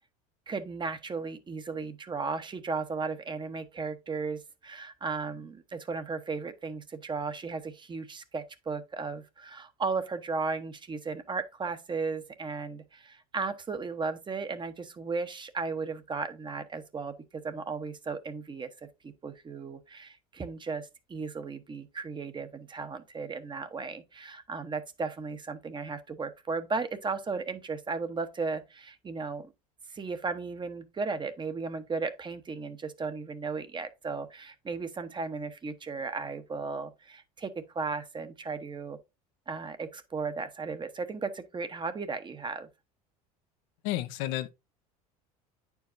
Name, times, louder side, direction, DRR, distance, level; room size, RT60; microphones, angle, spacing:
voice 1, 0.5-29.5 29.9-39.0 39.5-42.7, right 4 dB, 25° right, 0.9 m, -35 dB
voice 2, 43.8-44.5, left 15 dB, 65° left, 0.7 m, -31 dB
9.2 x 4.7 x 2.6 m
hypercardioid pair, 80°, 19 cm